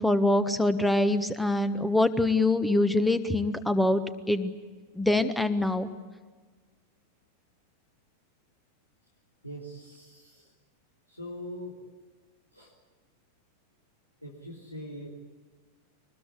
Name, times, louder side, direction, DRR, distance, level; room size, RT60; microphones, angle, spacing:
voice 1, 0.0-4.0 4.3-4.5 4.9-5.9, left 2 dB, 5° left, 12 dB, 1.4 m, -24 dB
voice 2, 9.4-10.5 11.1-11.7 12.5-12.7 14.2-15.1, equal, 90° left, -3 dB, 3.8 m, -42 dB
23.5 x 20.0 x 8.6 m, 1.4 s
figure-of-eight pair, 90°, 0 cm